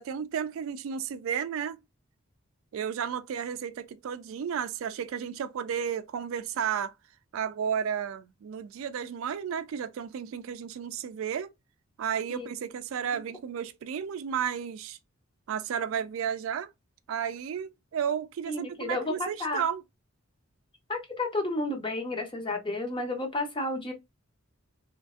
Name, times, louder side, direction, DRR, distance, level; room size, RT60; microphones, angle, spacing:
voice 1, 0.0-1.8 2.7-6.9 7.3-11.5 12.0-15.0 15.5-16.7 17.1-19.8, right 8 dB, 70° right, 0.3 m, -33 dB
voice 2, 18.5-19.6 20.9-23.9, left 2 dB, 25° left, 0.7 m, -31 dB
3.1 x 2.5 x 2.4 m
head